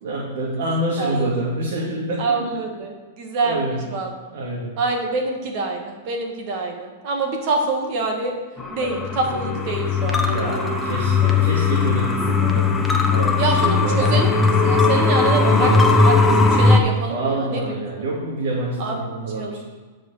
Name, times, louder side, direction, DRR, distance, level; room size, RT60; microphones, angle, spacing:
voice 1, 0.0-2.5 3.4-4.8 10.3-14.4 15.3-16.0 17.1-19.6, right 2 dB, 65° right, -4 dB, 2.4 m, -27 dB
voice 2, 1.0-1.4 2.2-4.1 4.8-8.3 8.7-10.5 13.4-15.7 16.0-16.1 16.5-17.6 18.8-18.9 19.4-19.6, right 3 dB, 45° right, 2 dB, 1.8 m, -25 dB
sound 1, 8.6-16.8, left 4 dB, 10° left, 0.9 m, -18 dB
11.0 x 5.1 x 6.7 m, 1.4 s
hypercardioid pair, 145°, 0 cm